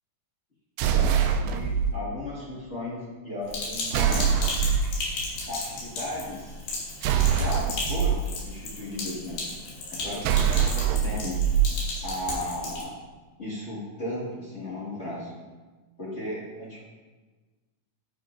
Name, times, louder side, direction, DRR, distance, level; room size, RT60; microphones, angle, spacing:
voice 1, 0.8-4.5 5.5-6.6 7.2-9.6 9.9-11.4 12.0-12.9 13.4-15.3 16.0-16.8, left 1 dB, 40° left, -7 dB, 0.9 m, -35 dB
sound 1, 0.8-1.9 3.9-5.0 7.0-8.1 10.2-11.7, right 8 dB, 80° right, 2.1 m, -23 dB
Sink (filling or washing), 3.5-12.8, left 2 dB, 75° left, 3.8 m, -35 dB
9.4 x 9.4 x 2.6 m, 1.3 s
omnidirectional pair, 4.4 m